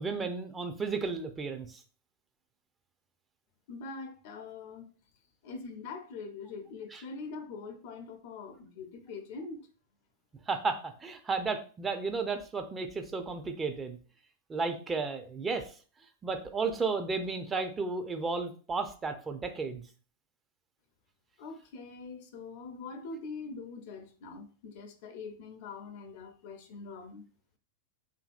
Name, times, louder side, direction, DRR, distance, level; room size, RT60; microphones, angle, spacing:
voice 1, 0.0-1.8 6.9-7.0 10.5-14.0 14.5-15.7 16.2-19.8, right 4 dB, 20° right, 0.4 m, -33 dB
voice 2, 3.7-4.9 5.4-9.7 21.4-27.2, left 4 dB, 60° left, 0.5 m, -43 dB
2.7 x 2.6 x 2.4 m
hypercardioid pair, 105°, 0 cm